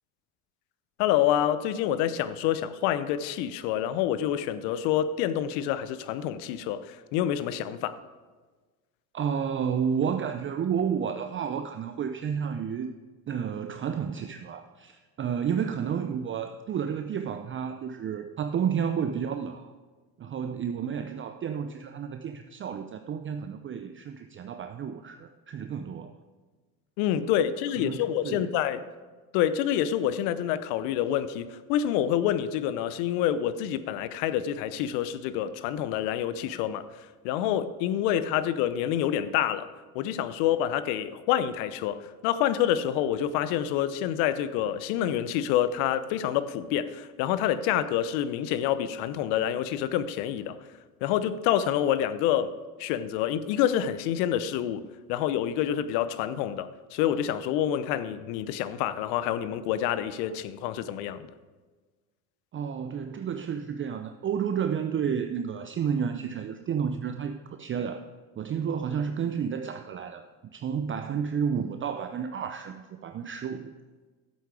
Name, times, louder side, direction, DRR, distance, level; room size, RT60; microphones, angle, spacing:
voice 1, 1.0-8.0 27.0-28.8 29.3-36.8 37.2-39.7 39.9-50.6 51.0-52.5 52.8-61.3, left 10 dB, 65° left, 14 dB, 0.9 m, -27 dB
voice 2, 9.1-12.9 13.3-19.7 20.2-26.1 27.8-28.5 62.5-68.1 68.4-70.2 70.5-73.7, right 7 dB, 30° right, 7 dB, 0.6 m, -31 dB
12.0 x 8.1 x 4.8 m, 1.4 s
hypercardioid pair, 75°, 44 cm